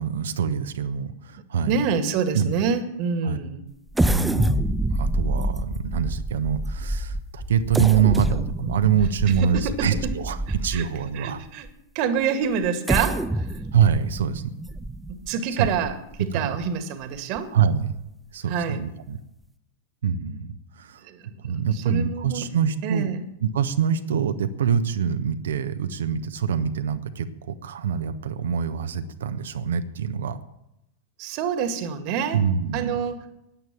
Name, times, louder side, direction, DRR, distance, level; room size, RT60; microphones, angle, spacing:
voice 1, 0.0-1.8 2.3-2.5 3.2-3.4 4.1-4.6 4.9-11.4 13.7-14.4 15.6-15.7 16.3-16.6 17.5-17.9 18.3-19.2 20.0-21.0 21.4-23.1 23.4-30.4 32.3-33.0, right 7 dB, 65° right, 10 dB, 1.1 m, -25 dB
voice 2, 1.7-3.6 9.2-10.1 10.7-10.9 11.1-11.7 12.0-13.5 15.1-17.5 18.5-18.8 21.0-22.5 22.8-23.2 31.2-32.4 32.7-33.3, right 6 dB, 45° right, 9 dB, 2.0 m, -27 dB
sound 1, 3.9-11.1 11.7-11.8 12.6-16.2 16.6-16.7 17.2-17.4, right 1 dB, 5° right, 0.8 m, -27 dB
17.0 x 11.0 x 7.4 m, 0.87 s
figure-of-eight pair, 90°, 0 cm